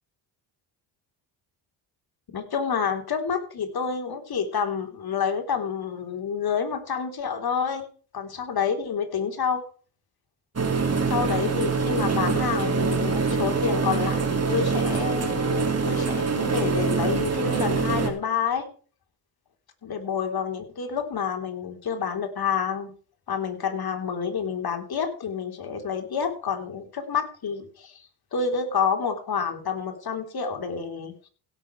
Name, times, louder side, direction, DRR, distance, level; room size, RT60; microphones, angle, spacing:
voice 1, 2.3-7.9 8.1-9.7 11.0-18.7 19.8-22.9 23.3-31.3, left 6 dB, 50° left, 5 dB, 3.7 m, -28 dB
sound 1, 10.6-18.1, right 4 dB, 30° right, 4.0 m, -24 dB
17.0 x 7.0 x 4.8 m, 0.39 s
supercardioid pair, 60°, 48 cm